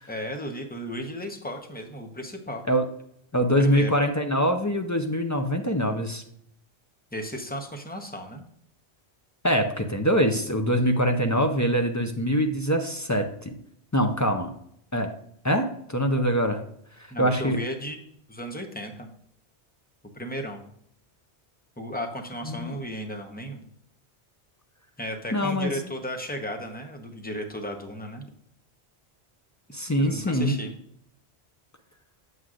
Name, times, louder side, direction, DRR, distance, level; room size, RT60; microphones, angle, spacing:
voice 1, 0.1-2.6 3.6-3.9 7.1-8.4 17.1-18.0 18.3-19.1 20.1-20.6 21.8-23.6 25.0-28.2 30.0-30.7, equal, 10° left, 3 dB, 0.8 m, -34 dB
voice 2, 3.3-6.2 9.4-13.5 13.9-14.5 14.9-15.1 15.4-16.6 17.0-17.6 22.5-22.8 25.3-25.7 29.7-30.6, equal, 25° left, 5 dB, 0.4 m, -24 dB
8.0 x 7.5 x 2.5 m, 0.68 s
omnidirectional pair, 1.1 m